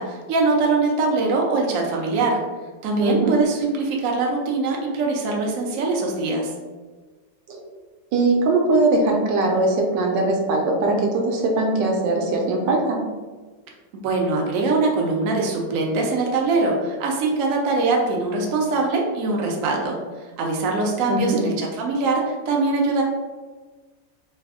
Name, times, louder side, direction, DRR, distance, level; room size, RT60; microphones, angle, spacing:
voice 1, 0.0-2.4 2.8-6.5 13.9-20.0 20.4-23.0, right 3 dB, 65° right, 0 dB, 0.8 m, -22 dB
voice 2, 3.0-3.3 7.5-7.6 8.1-13.0 21.1-21.4, right 2 dB, 80° right, 1 dB, 1.3 m, -21 dB
3.3 x 2.0 x 3.5 m, 1.3 s
omnidirectional pair, 1.9 m